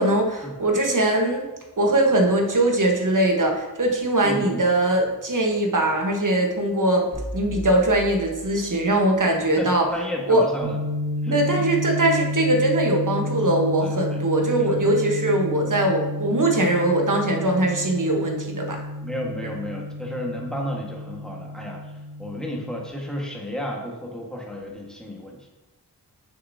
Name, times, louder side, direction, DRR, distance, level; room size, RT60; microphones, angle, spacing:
voice 1, 0.0-1.4 1.8-7.1 7.3-9.9 10.3-10.5 11.3-18.8, right 1 dB, 50° right, 1 dB, 1.1 m, -21 dB
voice 2, 4.2-4.7 9.6-10.8 11.2-11.7 13.8-14.2 14.7-14.8 19.0-21.9 22.2-25.5, equal, ahead, -2 dB, 1.4 m, -32 dB
sound 1, 7.1-9.2, equal, 40° left, 2.0 m, -37 dB
Dist Chr D oct, 10.6-22.9, left 1 dB, 80° right, 2.0 m, -31 dB
6.7 x 6.1 x 2.7 m, 1.1 s
wide cardioid pair, 45°, 40 cm